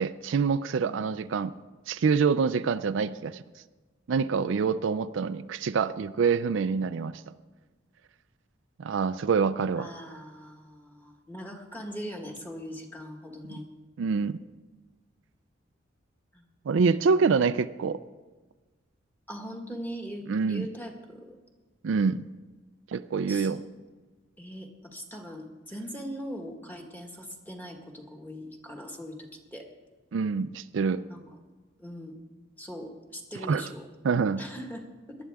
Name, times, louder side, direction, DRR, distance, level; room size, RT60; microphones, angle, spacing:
voice 1, 0.0-1.5 1.9-3.4 4.1-7.2 8.8-9.9 14.0-14.4 16.7-18.0 20.3-20.7 21.8-22.2 22.9-23.6 30.1-31.0 33.5-33.7 34.0-34.4, right 5 dB, 70° right, 13 dB, 0.4 m, -26 dB
voice 2, 9.8-13.6 16.3-16.5 19.3-21.4 23.3-23.6 24.4-29.7 31.1-31.2 31.8-32.2 32.6-33.9 34.4-35.2, equal, 10° left, 2 dB, 1.6 m, -41 dB
18.5 x 12.0 x 3.5 m, 1.3 s
head